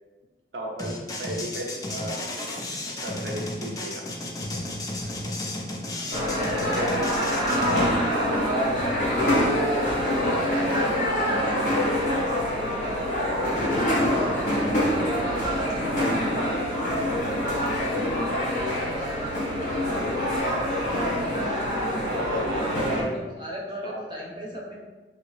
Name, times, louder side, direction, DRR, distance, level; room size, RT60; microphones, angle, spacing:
voice 1, 0.5-2.6 3.0-4.0 6.3-7.4 8.2-8.7 9.2-12.1 16.6-18.1 21.9-23.1 23.8-24.0, right 1 dB, 80° right, 0 dB, 0.6 m, -34 dB
sound 1, 0.8-7.9, left 1 dB, 20° left, 0.3 m, -33 dB
voice 2, 5.8-7.8 13.7-15.8 19.2-19.7 22.9-24.8, equal, 25° right, -3 dB, 0.6 m, -40 dB
sound 2, 6.1-23.0, equal, 45° left, 0.9 m, -25 dB
2.8 x 2.8 x 3.1 m, 1.2 s
head